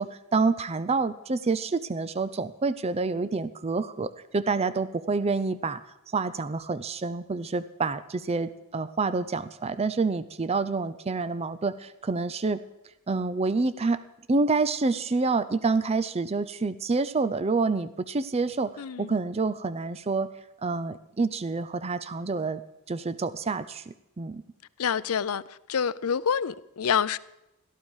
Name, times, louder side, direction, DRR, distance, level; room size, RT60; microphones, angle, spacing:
voice 1, 0.0-5.8 6.1-12.6 13.1-14.0 14.3-20.3 20.6-22.6 22.9-24.4, right 3 dB, 30° right, 0.5 m, -28 dB
voice 2, 18.8-19.1 24.8-25.4 25.7-27.2, left 7 dB, 75° left, 0.5 m, -27 dB
17.5 x 13.0 x 4.9 m
head